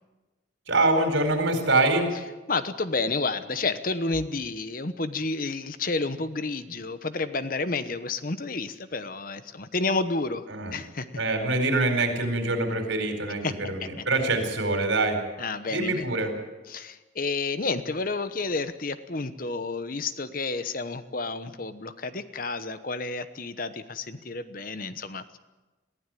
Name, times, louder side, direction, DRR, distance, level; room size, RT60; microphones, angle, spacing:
voice 1, 0.7-2.1 10.5-10.8 11.2-15.2 15.7-16.3, right 2 dB, 85° right, 5 dB, 4.5 m, -25 dB
voice 2, 2.5-10.4 10.7-11.1 13.4-13.5 15.4-15.9 16.7-25.4, left 3 dB, 45° left, 12 dB, 1.0 m, -30 dB
22.5 x 15.0 x 9.2 m, 1.2 s
head